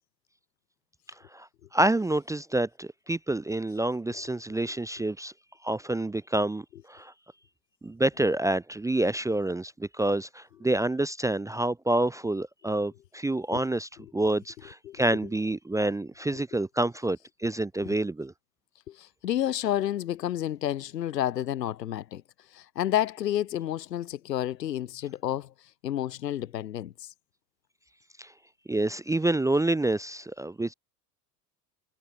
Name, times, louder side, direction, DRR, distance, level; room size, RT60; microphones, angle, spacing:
voice 1, 1.7-5.3 5.6-7.1 7.8-18.3 28.2-28.3 28.7-30.7, right 2 dB, 5° right, 0.7 m, -28 dB
voice 2, 18.9-22.2 22.5-25.5 25.8-27.1, left 12 dB, 80° left, 1.1 m, -30 dB
figure-of-eight pair, 75°, 49 cm